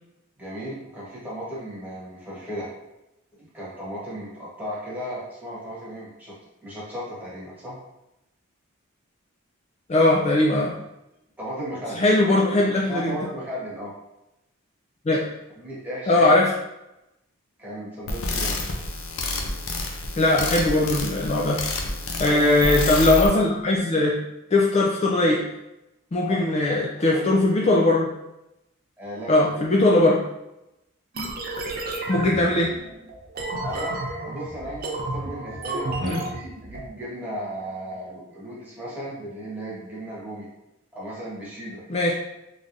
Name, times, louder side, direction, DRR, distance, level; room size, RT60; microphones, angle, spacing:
voice 1, 0.4-2.7 3.4-6.3 6.6-7.8 11.4-12.0 12.9-13.9 15.6-16.3 17.6-18.6 22.3-22.8 26.3-27.3 29.0-29.6 33.6-34.0 34.2-40.5 40.9-41.8, equal, 10° right, -8 dB, 1.2 m, -35 dB
voice 2, 9.9-10.7 11.9-13.2 15.1-15.3 16.1-16.5 20.2-21.6 22.2-24.2 24.5-25.4 26.1-28.1 29.3-30.2 32.1-32.7 36.0-36.2 41.9-42.1, left 2 dB, 30° left, -2 dB, 0.3 m, -20 dB
sound 1, 18.1-23.3, left 2 dB, 90° left, 0.6 m, -29 dB
sound 2, 31.1-36.9, right 2 dB, 45° right, 0.5 m, -32 dB
3.6 x 3.3 x 2.6 m, 0.91 s
head